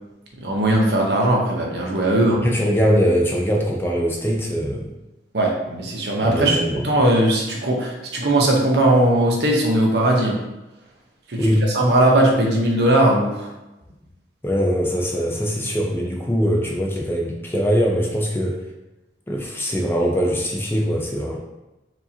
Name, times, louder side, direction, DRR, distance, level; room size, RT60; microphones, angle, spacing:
voice 1, 0.4-2.5 5.3-6.6 6.8-10.4 11.3-13.5, right 1 dB, 65° right, -1 dB, 0.8 m, -19 dB
voice 2, 2.4-4.9 6.2-6.8 11.4-11.7 14.4-18.6 19.3-21.4, equal, 10° left, -1 dB, 0.4 m, -22 dB
4.6 x 2.8 x 2.7 m, 0.98 s
head